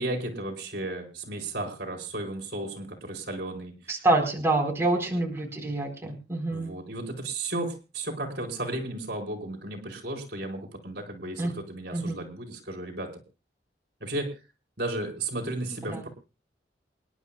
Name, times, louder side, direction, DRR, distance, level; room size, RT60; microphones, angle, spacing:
voice 1, 0.0-4.0 5.1-5.3 6.5-13.2 14.0-14.4 14.8-16.1, right 2 dB, 60° right, 2 dB, 4.9 m, -34 dB
voice 2, 3.9-6.7 11.4-11.5 11.9-12.2 15.9-16.0, right 2 dB, 15° right, 0 dB, 4.4 m, -26 dB
28.0 x 12.0 x 2.3 m, 0.31 s
head